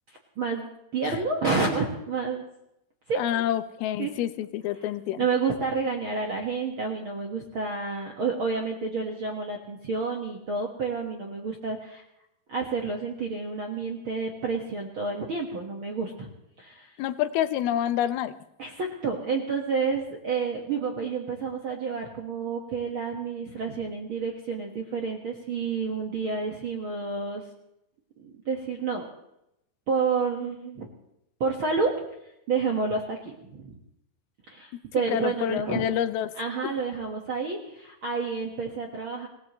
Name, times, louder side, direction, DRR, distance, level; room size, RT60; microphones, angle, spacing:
voice 1, 0.4-2.4 3.1-3.4 4.0-4.1 5.2-12.0 12.5-16.3 16.6-16.9 18.6-27.4 28.2-29.1 29.9-30.9 31.4-31.9 32.5-33.2 33.5-33.7 34.5-35.8 36.4-39.3, right 4 dB, 60° right, 1 dB, 1.4 m, -29 dB
voice 2, 3.2-5.2 17.0-18.3 35.1-36.3, left 11 dB, 80° left, 12 dB, 2.6 m, -27 dB
26.5 x 17.0 x 3.1 m, 0.82 s
omnidirectional pair, 4.4 m